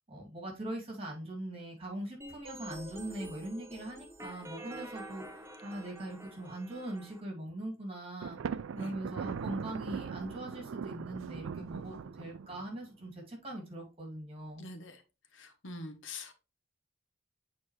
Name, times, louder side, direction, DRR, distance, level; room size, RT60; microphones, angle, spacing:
voice 1, 0.1-8.4 8.7-14.7, right 1 dB, 30° right, 2.4 m, -41 dB
sound 1, 2.2-7.2, right 1 dB, 15° right, 0.7 m, -47 dB
Thunder, 8.2-12.8, right 6 dB, 75° right, 0.4 m, -40 dB
voice 2, 14.6-15.0 15.3-16.3, left 2 dB, 65° left, 1.0 m, -44 dB
8.6 x 4.1 x 3.1 m
head